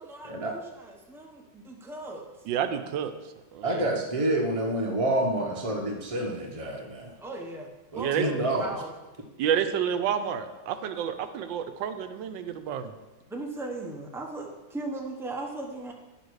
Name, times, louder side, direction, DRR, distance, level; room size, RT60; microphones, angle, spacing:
voice 1, 0.0-2.3 7.2-7.7 7.9-9.0 13.3-15.9, right 2 dB, 5° right, 1 dB, 0.5 m, -38 dB
voice 2, 2.5-3.1 3.5-3.9 8.0-8.2 9.4-12.9, right 8 dB, 75° right, 9 dB, 1.3 m, -29 dB
voice 3, 3.6-7.1 7.9-8.7, right 1 dB, 25° right, 1 dB, 0.9 m, -28 dB
10.0 x 6.8 x 4.7 m, 1.1 s
omnidirectional pair, 2.1 m